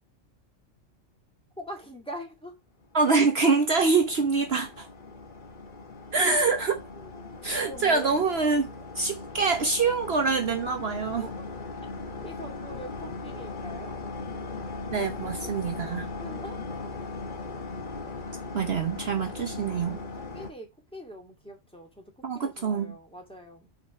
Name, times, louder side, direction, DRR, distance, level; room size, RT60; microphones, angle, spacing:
voice 1, 1.6-2.5 7.0-8.2 11.2-11.5 12.2-13.9 16.2-16.6 19.7-23.7, equal, 5° left, 2.3 m, -43 dB
voice 2, 2.9-4.9 6.1-6.8 7.4-8.7 8.9-11.3 14.9-16.1 18.5-20.0 22.2-22.9, right 4 dB, 55° right, 1.1 m, -25 dB
sound 1, 3.0-20.5, left 3 dB, 40° left, 1.4 m, -39 dB
5.7 x 4.4 x 5.7 m
omnidirectional pair, 1.3 m